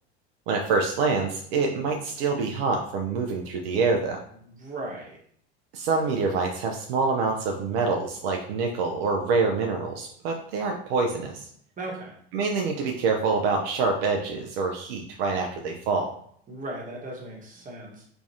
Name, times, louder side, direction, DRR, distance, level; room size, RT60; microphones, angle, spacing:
voice 1, 0.5-4.2 5.7-11.4 12.3-16.1, right 4 dB, 65° right, 2 dB, 0.6 m, -26 dB
voice 2, 4.4-5.2 11.8-12.2 16.5-18.0, right 2 dB, 25° right, -2 dB, 1.3 m, -37 dB
3.4 x 3.1 x 2.7 m, 0.62 s
hypercardioid pair, 85°, 32 cm